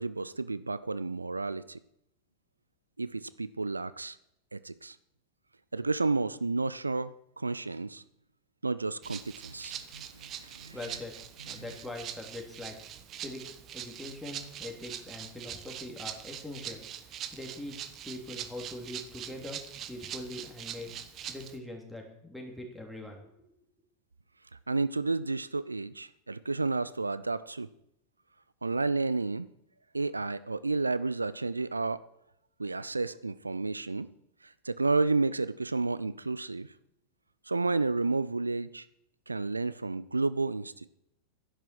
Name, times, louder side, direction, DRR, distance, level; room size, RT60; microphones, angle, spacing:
voice 1, 0.0-1.8 3.0-4.2 4.5-5.0 5.7-8.0 8.6-10.8 11.6-11.7 24.7-27.7 28.6-29.5 29.9-32.0 32.6-34.1 34.4-36.7 37.5-38.9 39.3-40.9, right 3 dB, 85° right, 17 dB, 0.4 m, -31 dB
Rattle (instrument), 9.0-21.6, right 9 dB, 35° right, 1.0 m, -43 dB
voice 2, 10.7-11.1 11.4-12.7 13.1-13.4 13.7-16.8 17.3-17.8 18.0-19.6 19.9-20.9 21.3-23.3, left 1 dB, ahead, 2 dB, 3.1 m, -42 dB
11.5 x 10.5 x 6.1 m, 0.79 s
figure-of-eight pair, 90°, 0 cm